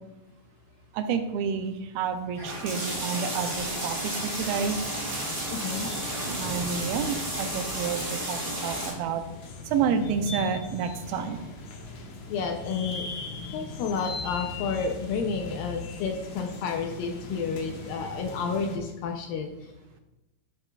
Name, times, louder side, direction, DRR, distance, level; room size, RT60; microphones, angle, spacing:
voice 1, 0.9-4.8 6.4-9.2 9.7-11.4, right 6 dB, 80° right, 8 dB, 2.4 m, -29 dB
sound 1, 2.4-8.9, right 1 dB, 15° right, 1.8 m, -32 dB
sound 2, 3.3-8.1, right 4 dB, 55° right, 2.6 m, -44 dB
sound 3, 4.3-18.8, left 2 dB, 60° left, 2.3 m, -40 dB
voice 2, 5.5-5.9 12.3-13.1 13.5-19.7, left 5 dB, 80° left, 4 dB, 2.2 m, -31 dB
10.5 x 8.6 x 2.4 m, 0.98 s
omnidirectional pair, 4.5 m